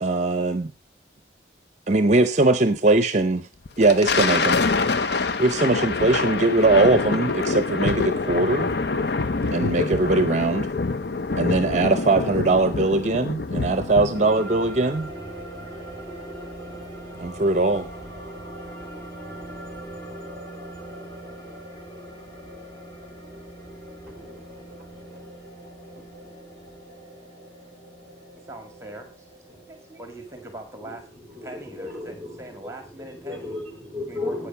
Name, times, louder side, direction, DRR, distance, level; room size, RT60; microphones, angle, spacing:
voice 1, 0.0-0.7 1.9-3.5 3.8-4.6 5.4-8.7 9.5-10.7 11.4-15.1 17.2-17.9, right 2 dB, 40° right, 0.7 m, -21 dB
Thunder, 3.7-14.4, left 4 dB, 65° left, 0.7 m, -25 dB
sound 1, 14.1-30.7, right 1 dB, 25° left, 3.7 m, -40 dB
voice 2, 24.1-24.6 25.0-25.2 25.9-26.0 29.5-29.6 30.8-34.5, left 2 dB, 5° left, 3.2 m, -36 dB
voice 3, 28.4-31.1 31.4-33.6 34.1-34.5, right 1 dB, 15° right, 1.7 m, -42 dB
10.0 x 9.0 x 5.7 m
head